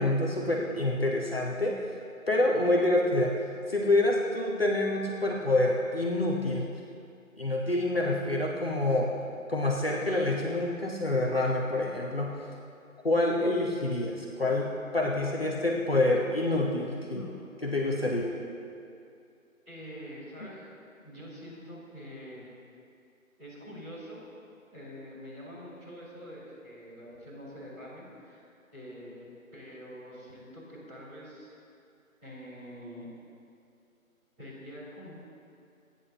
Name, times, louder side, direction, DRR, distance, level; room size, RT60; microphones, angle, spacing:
voice 1, 0.0-1.8 2.3-3.4 3.7-6.7 7.4-9.1 9.5-12.3 13.0-17.2 17.6-18.4, left 2 dB, 45° left, -2 dB, 1.1 m, -27 dB
voice 2, 19.6-20.7 21.0-22.5 23.4-24.2 24.7-28.4 28.7-31.5 32.2-33.1 34.4-35.1, equal, 5° right, -17 dB, 2.9 m, -45 dB
28.0 x 10.0 x 2.9 m, 2.5 s
figure-of-eight pair, 165°, 42 cm